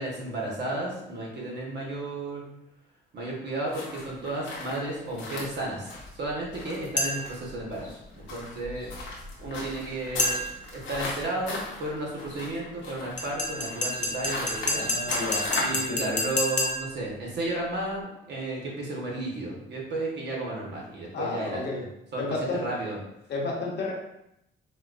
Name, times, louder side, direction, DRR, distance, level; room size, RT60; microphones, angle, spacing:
voice 1, 0.0-2.5 3.1-8.9 9.4-10.4 10.7-14.9 15.5-22.2 22.5-23.0, right 2 dB, 60° right, -2 dB, 1.1 m, -33 dB
sound 1, 3.7-15.9, left 2 dB, 85° left, 0.9 m, -38 dB
sound 2, 7.0-7.4 10.2-10.7 13.2-17.0, left 2 dB, 40° left, 0.7 m, -29 dB
voice 2, 14.8-16.2 21.1-21.8 22.2-22.6 23.3-23.9, left 3 dB, 60° left, -2 dB, 1.0 m, -32 dB
4.3 x 2.2 x 2.4 m, 0.80 s
cardioid pair, 90°, 20 cm